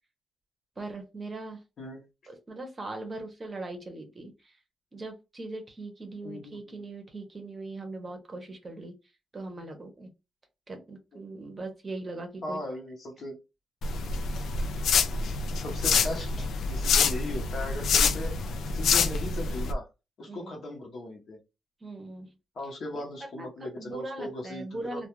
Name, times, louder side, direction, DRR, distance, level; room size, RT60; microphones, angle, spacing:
voice 1, 0.8-1.6 2.3-4.6 4.9-8.9 9.3-10.1 10.7-12.6 20.3-20.5 21.8-22.3 22.9-25.1, right 2 dB, 25° right, 4 dB, 0.7 m, -40 dB
voice 2, 6.2-6.8 11.1-11.2 12.4-13.4 15.5-18.3 18.7-19.9 20.2-21.4 22.5-25.1, left 2 dB, 55° left, 0 dB, 0.8 m, -38 dB
sound 1, 13.8-19.7, left 5 dB, 85° left, 0.3 m, -27 dB
2.3 x 2.2 x 2.9 m, 0.26 s
wide cardioid pair, 165°, 0 cm